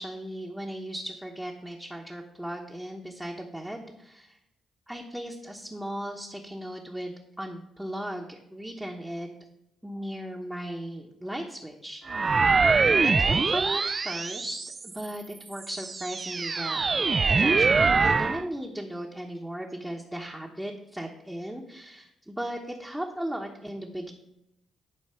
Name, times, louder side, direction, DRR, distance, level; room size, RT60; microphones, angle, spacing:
voice 1, 0.0-4.4 4.9-9.3 9.8-12.0 13.0-16.8 17.3-24.1, right 1 dB, 5° right, -1 dB, 1.0 m, -37 dB
sound 1, 12.1-15.0 15.6-18.4, right 4 dB, 35° right, 0.3 m, -23 dB
11.0 x 4.5 x 4.4 m, 0.84 s
cardioid pair, 90°, 0 cm